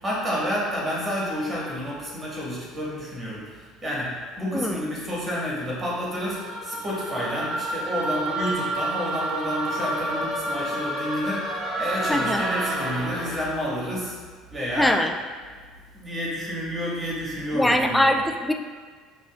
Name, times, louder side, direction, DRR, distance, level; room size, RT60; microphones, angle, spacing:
voice 1, 0.0-14.2 14.5-15.0 15.9-18.2, equal, 25° right, -5 dB, 1.5 m, -30 dB
sound 1, 6.3-13.6, right 1 dB, 60° right, 0.7 m, -29 dB
voice 2, 12.1-12.5 14.8-15.1 17.5-18.5, left 1 dB, 5° left, 4 dB, 0.3 m, -22 dB
5.7 x 2.4 x 2.3 m, 1.5 s
hypercardioid pair, 75°, 0 cm